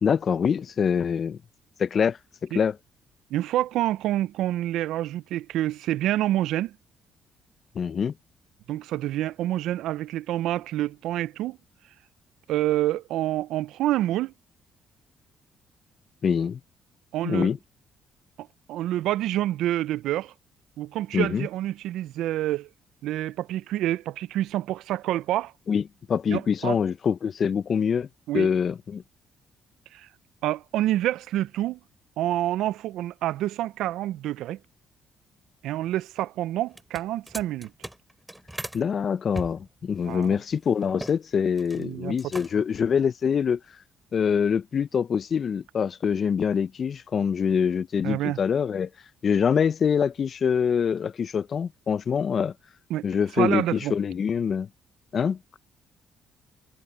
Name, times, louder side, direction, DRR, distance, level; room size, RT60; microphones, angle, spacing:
voice 1, 0.0-1.4 1.8-2.8 7.7-8.1 16.2-16.6 17.2-17.6 21.1-21.5 25.7-25.8 26.1-28.1 28.3-29.0 38.7-43.6 44.1-48.9 49.2-52.5 53.0-54.7 55.1-55.4, left 7 dB, 50° left, 0.7 m, -25 dB
voice 2, 3.3-6.7 8.7-11.6 12.5-14.3 17.1-17.5 18.4-20.3 20.8-22.7 23.0-25.5 26.3-26.8 28.3-28.5 29.9-30.1 30.4-31.8 32.2-34.6 35.6-37.7 40.1-40.3 41.8-42.2 48.0-48.4 52.9-53.0 53.4-54.0, right 14 dB, 80° right, 0.5 m, -27 dB
sound 1, 36.7-38.8 39.3-41.2 41.5-41.9 42.2-42.8, right 1 dB, 10° right, 3.5 m, -39 dB
supercardioid pair, 65°, 0 cm